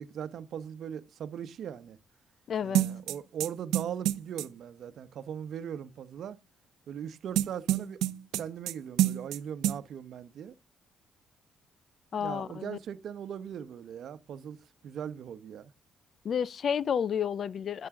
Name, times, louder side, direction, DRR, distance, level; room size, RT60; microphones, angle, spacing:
voice 1, 0.0-2.0 2.6-6.4 6.9-8.0 8.4-10.5 12.2-14.6 14.8-15.7, right 8 dB, 70° right, 1.0 m, -39 dB
voice 2, 2.5-2.9 12.1-12.8 16.2-17.9, left 8 dB, 55° left, 0.5 m, -31 dB
sound 1, 2.7-4.5 7.4-8.7 9.0-9.4 9.6-9.8, right 13 dB, 90° right, 0.8 m, -27 dB
11.0 x 8.7 x 3.8 m
cardioid pair, 90°, 0 cm